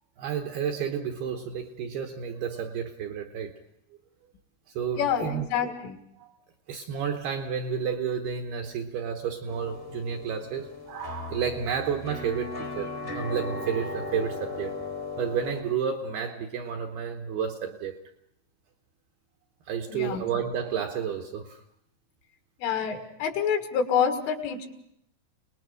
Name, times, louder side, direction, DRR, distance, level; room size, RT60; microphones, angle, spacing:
voice 1, 0.2-3.5 4.8-5.4 6.2-6.3 6.7-14.7 15.2-18.0 19.7-21.6, right 7 dB, 75° right, 4 dB, 2.4 m, -31 dB
voice 2, 4.9-6.0 19.9-20.3 22.6-24.7, left 7 dB, 75° left, 5 dB, 4.3 m, -27 dB
sound 1, 9.5-15.6, left 3 dB, 30° left, 0.9 m, -37 dB
29.5 x 20.0 x 5.0 m, 0.75 s
omnidirectional pair, 5.7 m